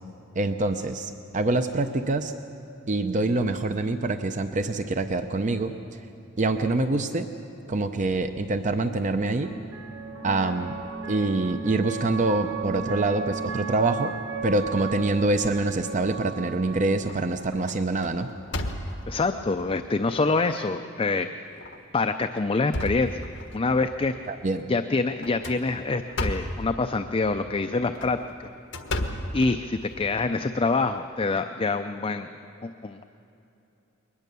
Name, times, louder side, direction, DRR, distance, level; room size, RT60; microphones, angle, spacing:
voice 1, 0.4-2.4 2.9-5.7 6.4-7.3 7.7-9.5 10.2-10.7 11.1-14.1 14.4-18.3 24.3-24.7, right 2 dB, 40° right, 8 dB, 0.6 m, -25 dB
sound 1, 8.0-18.3, right 5 dB, 85° right, 1.6 m, -37 dB
sound 2, 16.0-16.6 17.1-17.3 17.7-19.3 19.9-20.0 20.5-20.6 21.5-21.8 22.2-23.7 25.2-26.7 27.8-30.0, left 1 dB, 65° left, 1.5 m, -33 dB
voice 2, 19.1-21.3 21.9-23.3 23.5-24.1 24.7-28.2 29.3-32.3 32.6-33.1, left 3 dB, 25° left, 8 dB, 0.5 m, -26 dB
22.0 x 20.0 x 6.9 m, 2.9 s
head